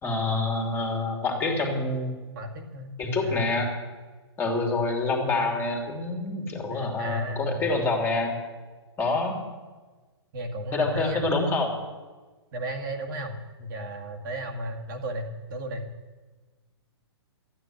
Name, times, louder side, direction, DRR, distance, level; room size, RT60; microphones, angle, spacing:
voice 1, 0.0-2.1 3.0-3.7 4.4-8.4 9.0-9.4 10.7-11.7, left 3 dB, 15° left, 2 dB, 2.8 m, -27 dB
voice 2, 2.4-2.9 3.2-3.6 6.7-7.6 10.3-11.3 12.5-15.9, equal, 50° right, 3 dB, 2.0 m, -34 dB
13.0 x 9.5 x 9.4 m, 1.3 s
hypercardioid pair, 140°, 14 cm